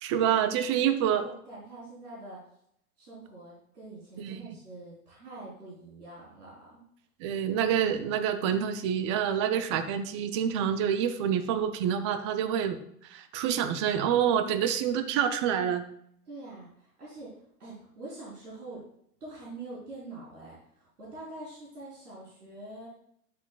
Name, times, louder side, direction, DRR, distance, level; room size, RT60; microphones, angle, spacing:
voice 1, 0.0-1.3 4.2-4.4 7.2-12.8 13.1-15.8, right 9 dB, 20° right, 10 dB, 0.4 m, -27 dB
voice 2, 0.9-2.4 3.0-6.8 16.3-18.8 19.2-22.9, right 2 dB, 80° right, -6 dB, 3.6 m, -45 dB
10.5 x 7.6 x 2.3 m, 0.70 s
figure-of-eight pair, 105°, 46 cm